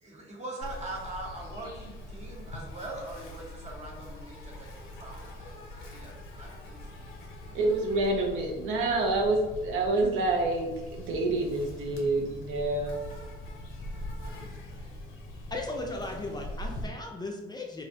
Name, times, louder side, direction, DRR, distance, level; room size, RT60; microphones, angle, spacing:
voice 1, 0.0-6.8 14.2-14.5 14.8-14.9, right 1 dB, 35° right, -2 dB, 0.8 m, -42 dB
Insect, 0.6-16.9, left 1 dB, 90° left, 0.5 m, -42 dB
voice 2, 7.5-13.0, right 2 dB, 90° right, 1 dB, 0.5 m, -27 dB
voice 3, 15.5-17.8, left 2 dB, 20° left, 1 dB, 0.4 m, -36 dB
2.5 x 2.0 x 2.6 m, 1.1 s
cardioid pair, 90°, 20 cm